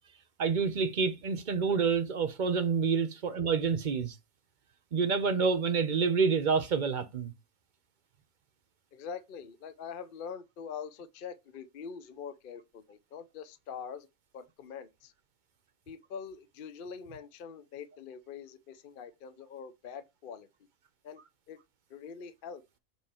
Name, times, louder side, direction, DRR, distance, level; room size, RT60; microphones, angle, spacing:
voice 1, 0.4-4.1 4.9-7.3, right 5 dB, 45° right, 0.8 m, -28 dB
voice 2, 8.9-14.1 14.3-15.1 15.9-20.5 21.0-21.2 21.5-21.6 21.9-22.6, left 6 dB, 50° left, 0.7 m, -44 dB
7.2 x 3.2 x 4.3 m
omnidirectional pair, 1.4 m